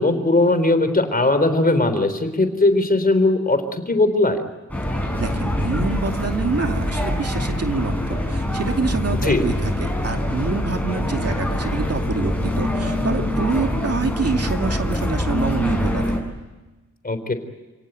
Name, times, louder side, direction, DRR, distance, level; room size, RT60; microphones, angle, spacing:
voice 1, 0.0-4.4 9.2-9.4 17.0-17.3, left 2 dB, 30° left, 9 dB, 3.8 m, -19 dB
sound 1, 4.7-16.2, left 1 dB, 5° left, 7.2 m, -24 dB
voice 2, 5.2-16.2, right 4 dB, 55° right, 4 dB, 2.5 m, -26 dB
29.5 x 18.5 x 9.4 m, 1.1 s
wide cardioid pair, 130°, 30 cm